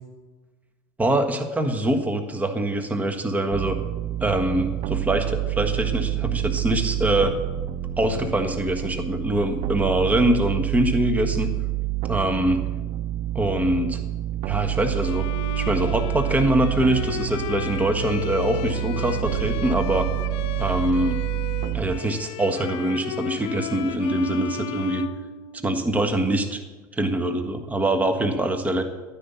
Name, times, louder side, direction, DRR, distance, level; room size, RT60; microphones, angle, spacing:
voice 1, 1.0-3.8 4.2-7.3 8.0-11.5 12.1-12.6 13.3-14.0 14.4-15.2 15.5-20.1 20.6-21.2 21.7-25.0 25.6-26.6 26.9-28.8, right 1 dB, 15° right, 6 dB, 1.5 m, -24 dB
sound 1, 3.5-22.0, right 15 dB, 55° right, 0.5 m, -28 dB
Bowed string instrument, 15.0-26.0, left 9 dB, 65° left, 0.7 m, -34 dB
12.0 x 9.8 x 7.0 m, 1.2 s
supercardioid pair, 105°, 11 cm